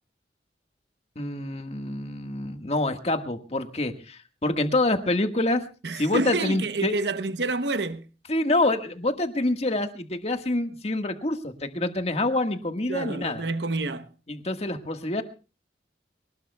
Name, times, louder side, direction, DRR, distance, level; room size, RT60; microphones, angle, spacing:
voice 1, 1.2-5.6 6.0-6.9 8.3-13.4 14.3-15.2, left 2 dB, 35° left, 1.7 m, -26 dB
voice 2, 5.8-8.1 12.9-14.1, right 3 dB, 75° right, 0.9 m, -28 dB
24.0 x 19.5 x 2.3 m
head